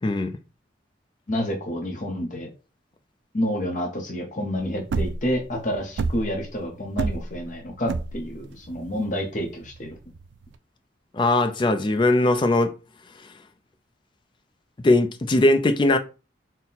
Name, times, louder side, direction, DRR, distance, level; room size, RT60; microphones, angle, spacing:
voice 1, 0.0-0.3 11.1-12.7 14.8-16.0, left 2 dB, 25° left, 0.4 m, -20 dB
voice 2, 1.3-2.5 3.3-9.9, equal, 40° left, 0.8 m, -29 dB
sound 1, 4.6-10.6, right 3 dB, 70° right, 0.3 m, -29 dB
4.2 x 2.1 x 3.9 m
head